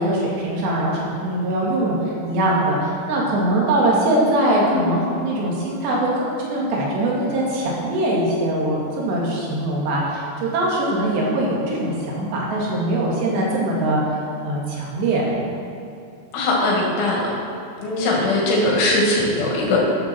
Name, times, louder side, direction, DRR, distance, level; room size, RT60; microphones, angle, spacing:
voice 1, 0.0-2.0 2.2-14.0 14.4-15.4, right 1 dB, 70° right, -4 dB, 4.2 m, -22 dB
voice 2, 4.6-5.0 16.3-17.2 17.8-19.8, left 2 dB, 80° left, -3 dB, 4.6 m, -20 dB
14.0 x 10.5 x 4.5 m, 2.5 s
omnidirectional pair, 5.3 m